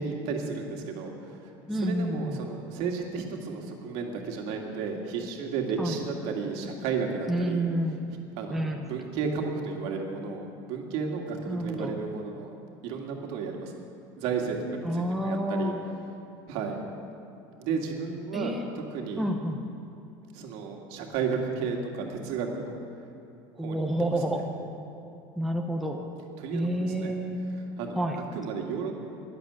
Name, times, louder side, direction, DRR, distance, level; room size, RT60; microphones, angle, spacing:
voice 1, 0.0-1.5 1.8-7.6 8.4-13.8 14.2-15.7 16.5-16.8 17.6-18.5 18.9-19.2 20.3-22.7 23.6-23.9 26.4-27.1 27.8-29.0, right 5 dB, 65° right, 1 dB, 2.1 m, -33 dB
voice 2, 1.7-2.4 5.8-6.0 7.3-8.1 8.5-8.8 11.5-12.0 14.8-15.8 18.3-18.6 19.2-19.6 23.6-24.5 25.4-26.1 26.5-27.4 27.9-28.2, right 1 dB, ahead, 1 dB, 0.9 m, -29 dB
12.5 x 11.0 x 8.0 m, 2.6 s
supercardioid pair, 140°, 11 cm